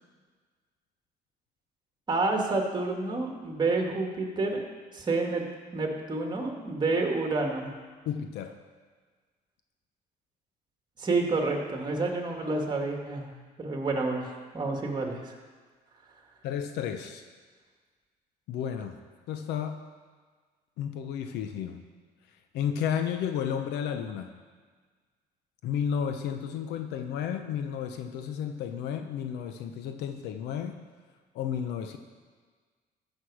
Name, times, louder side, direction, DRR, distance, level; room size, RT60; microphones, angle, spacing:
voice 1, 2.1-4.6 4.9-5.4 5.7-7.7 11.0-13.3 13.6-15.4, right 3 dB, 25° right, 1 dB, 2.0 m, -29 dB
voice 2, 8.1-8.6 16.4-17.2 18.5-19.0 19.3-19.8 20.8-21.8 22.5-24.3 25.6-30.8 31.3-32.0, left 8 dB, 85° left, 7 dB, 0.8 m, -32 dB
14.0 x 6.4 x 4.9 m, 1.5 s
cardioid pair, 110°, 17 cm